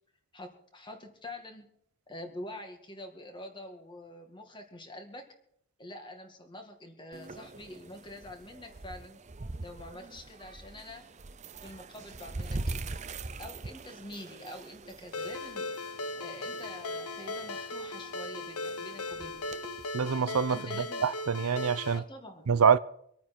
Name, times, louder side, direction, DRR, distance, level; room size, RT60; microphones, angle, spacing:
voice 1, 0.3-1.7 2.1-5.3 5.8-9.2 9.6-11.1 11.6-12.8 13.4-15.7 16.2-19.5 20.5-21.0 21.9-22.5, left 1 dB, 20° left, 2.1 m, -46 dB
sound 1, 7.1-19.9, right 2 dB, 30° right, 0.6 m, -43 dB
Ringtone, 15.1-22.0, left 2 dB, 85° left, 0.8 m, -38 dB
voice 2, 19.9-20.6 21.0-22.0 22.5-22.8, right 6 dB, 85° right, 0.6 m, -25 dB
25.0 x 9.3 x 4.3 m
head